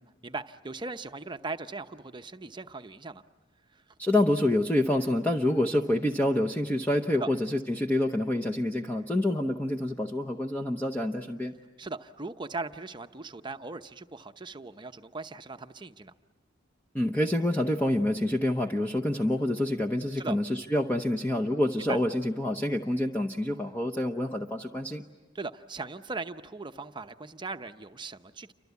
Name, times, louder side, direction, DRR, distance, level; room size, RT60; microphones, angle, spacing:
voice 1, 0.2-3.2 3.7-3.8 7.2-7.3 11.8-16.1 20.2-20.4 21.9-22.0 25.3-28.5, right 3 dB, 25° right, 9 dB, 0.8 m, -39 dB
voice 2, 4.0-11.6 16.9-25.0, left 1 dB, 10° left, 3 dB, 0.9 m, -27 dB
29.0 x 25.0 x 8.3 m, 1.2 s
head